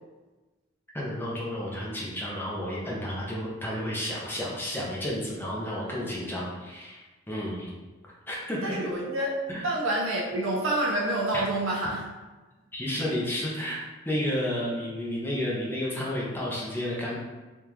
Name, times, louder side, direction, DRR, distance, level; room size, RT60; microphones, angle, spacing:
voice 1, 0.9-7.7 8.0-8.8 9.5-9.6 11.3-11.4 12.7-17.2, left 1 dB, 10° left, -5 dB, 0.5 m, -31 dB
voice 2, 8.6-9.4 9.6-12.0, right 1 dB, 80° right, -3 dB, 0.8 m, -27 dB
3.5 x 2.4 x 2.9 m, 1.2 s
head